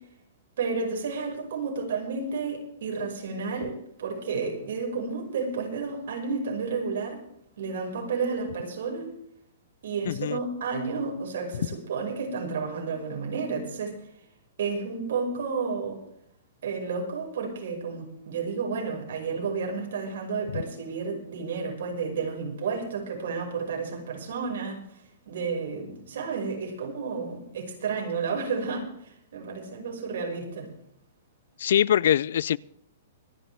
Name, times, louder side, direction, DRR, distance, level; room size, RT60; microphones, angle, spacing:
voice 1, 0.6-7.2 7.6-9.1 9.8-14.0 14.6-16.0 16.6-30.7, right 4 dB, 65° right, 5.8 m, -31 dB
voice 2, 10.1-10.4 31.6-32.6, left 10 dB, 65° left, 0.4 m, -23 dB
25.0 x 10.5 x 3.5 m
hypercardioid pair, 165°, 0 cm